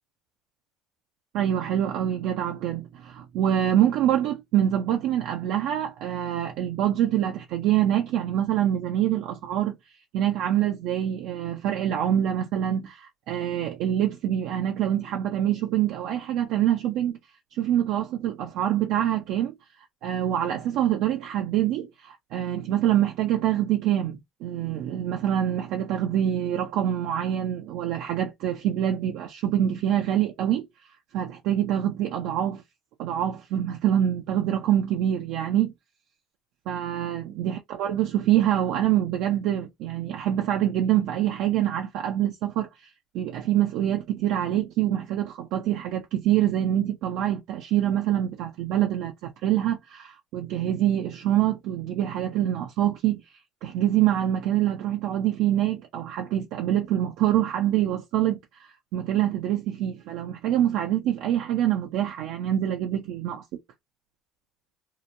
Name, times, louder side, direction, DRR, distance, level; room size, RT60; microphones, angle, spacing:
voice 1, 1.3-9.7 10.1-17.2 17.6-19.5 20.0-30.7 31.1-32.6 33.0-35.7 36.7-42.9 43.1-53.2 53.6-63.6, right 11 dB, 70° right, 0.5 m, -25 dB
2.8 x 2.1 x 2.5 m
supercardioid pair, 100°, 0 cm